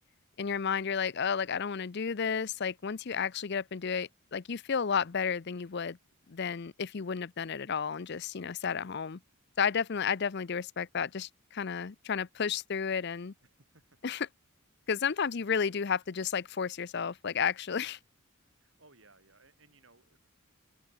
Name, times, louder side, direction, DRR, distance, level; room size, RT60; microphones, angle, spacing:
voice 1, 0.4-6.0 6.3-9.2 9.6-13.3 14.0-14.3 14.9-18.0, left 6 dB, 50° left, 0.5 m, -32 dB
voice 2, 13.6-14.0 15.1-15.2 18.6-20.3, right 3 dB, 60° right, 7.6 m, -62 dB
open air
head